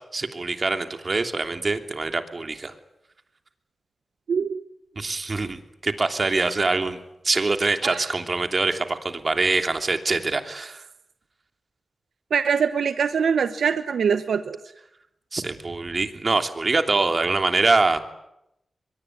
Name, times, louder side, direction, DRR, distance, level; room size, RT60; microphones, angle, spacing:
voice 1, 0.1-2.7 5.0-10.8 15.3-18.0, right 3 dB, 50° right, 6 dB, 3.0 m, -24 dB
voice 2, 4.3-4.6 7.8-8.1 12.3-14.6, right 6 dB, 85° right, 11 dB, 1.0 m, -23 dB
23.0 x 22.5 x 9.6 m, 0.84 s
cardioid pair, 45°, 0 cm